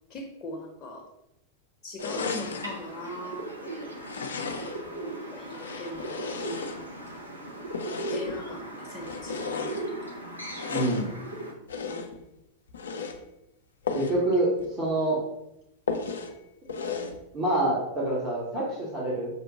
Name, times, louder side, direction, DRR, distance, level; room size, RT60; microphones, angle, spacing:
voice 1, 0.1-1.1 1.8-3.9 4.8-6.7 7.1-7.4 8.1-9.7 10.0-10.2 11.9-12.3 14.2-14.3, left 1 dB, 30° left, 0 dB, 0.7 m, -40 dB
sound 1, 2.0-2.8 4.0-4.9 5.4-7.1 7.7-8.4 9.0-9.9 10.5-11.1 11.7-12.2 12.7-13.2 13.8-14.2 14.6-14.7 15.0-15.1 15.9-16.3 16.7-17.2, left 5 dB, 65° left, 0.4 m, -34 dB
sound 2, 2.1-11.5, right 2 dB, 85° right, 0.5 m, -38 dB
voice 2, 10.7-11.0 13.9-14.5 14.8-15.2 17.3-19.3, right 1 dB, 35° right, -5 dB, 0.9 m, -26 dB
5.3 x 2.1 x 2.8 m, 0.86 s
figure-of-eight pair, 90°, 0 cm